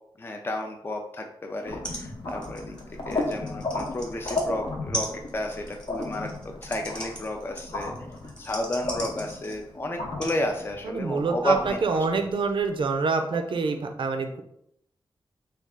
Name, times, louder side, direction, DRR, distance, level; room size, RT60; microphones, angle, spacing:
voice 1, 0.2-2.7 3.1-7.9 8.4-11.8, left 1 dB, 25° left, 3 dB, 0.4 m, -32 dB
sound 1, 1.6-1.7 1.8-2.0 2.3-4.5 4.9-9.7 10.2-10.4 11.2-11.3, right 1 dB, 10° left, 0.9 m, -38 dB
sound 2, 1.7-12.8, left 2 dB, 60° left, 0.7 m, -35 dB
voice 2, 10.8-14.4, right 4 dB, 65° right, 6 dB, 0.4 m, -26 dB
3.3 x 2.3 x 3.6 m, 0.76 s
wide cardioid pair, 110°, 9 cm